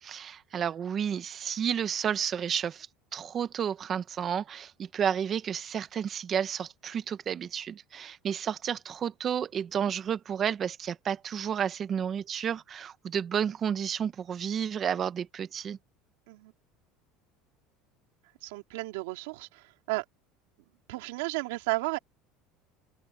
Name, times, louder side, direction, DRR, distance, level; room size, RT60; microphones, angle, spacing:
voice 1, 0.0-2.9 3.1-15.8, right 8 dB, 30° right, 1.1 m, -31 dB
voice 2, 18.4-20.0 20.9-22.0, right 23 dB, 90° right, 2.7 m, -33 dB
cardioid pair, 150°, 0 cm